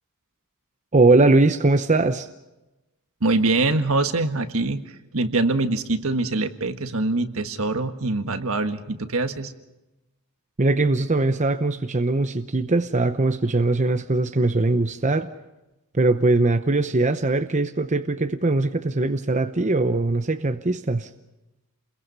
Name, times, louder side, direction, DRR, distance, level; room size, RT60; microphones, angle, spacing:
voice 1, 0.9-2.3 10.6-15.3 15.9-21.1, right 2 dB, 35° right, 8 dB, 0.8 m, -21 dB
voice 2, 3.2-9.5, right 2 dB, 65° right, 8 dB, 1.6 m, -24 dB
29.0 x 22.0 x 5.5 m, 0.99 s
head